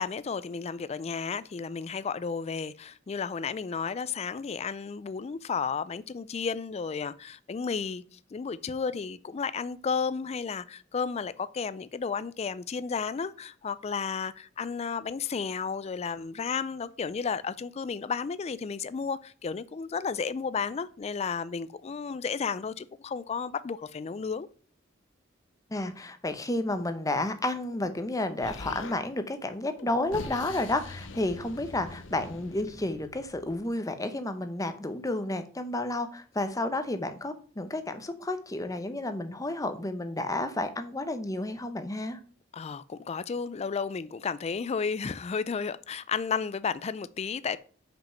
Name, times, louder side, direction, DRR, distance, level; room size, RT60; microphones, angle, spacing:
voice 1, 0.0-24.5 42.5-47.6, left 5 dB, 35° left, 0.4 m, -33 dB
voice 2, 25.7-42.2, left 2 dB, 20° left, 0.8 m, -31 dB
Explosion, 28.4-29.0 29.8-33.6, left 3 dB, 75° left, 0.8 m, -43 dB
5.9 x 5.2 x 5.6 m
head